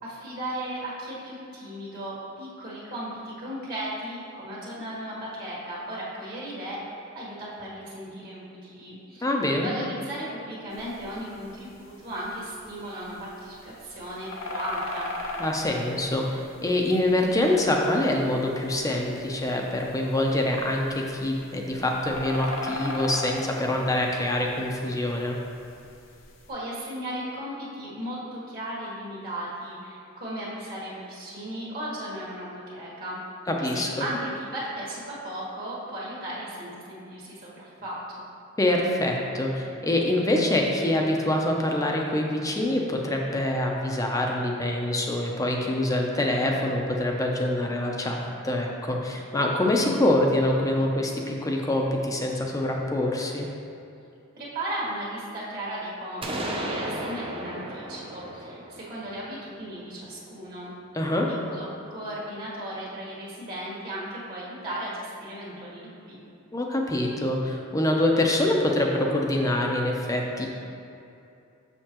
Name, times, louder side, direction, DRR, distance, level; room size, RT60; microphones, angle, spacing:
voice 1, 0.0-9.3 9.6-15.1 26.5-33.2 33.6-38.2 54.3-60.7 61.4-66.2, right 1 dB, 45° right, -6 dB, 1.5 m, -36 dB
voice 2, 9.2-9.7 15.4-25.4 33.5-34.0 38.6-53.5 60.9-61.3 66.5-70.5, left 1 dB, 15° left, 0 dB, 0.6 m, -25 dB
sound 1, 10.7-26.5, left 2 dB, 70° left, 0.8 m, -40 dB
sound 2, 56.2-60.0, right 1 dB, 25° right, 0.6 m, -35 dB
6.6 x 6.6 x 3.0 m, 2.7 s
head